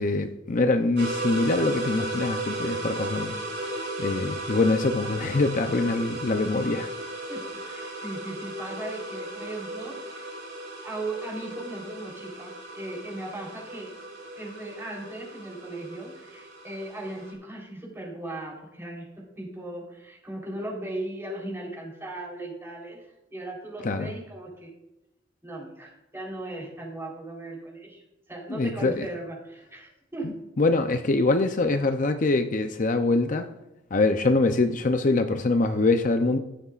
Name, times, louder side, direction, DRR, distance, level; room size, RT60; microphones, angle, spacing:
voice 1, 0.0-6.9 23.8-24.1 28.5-29.1 30.2-33.5 33.9-36.4, left 3 dB, 45° left, 7 dB, 0.6 m, -24 dB
sound 1, 1.0-17.3, right 1 dB, 65° right, 3.9 m, -35 dB
voice 2, 7.3-10.3 10.8-13.9 14.4-23.0 23.3-24.7 25.4-28.0 28.3-30.3, right 1 dB, 15° right, -2 dB, 3.8 m, -37 dB
15.0 x 11.5 x 2.5 m, 0.91 s
head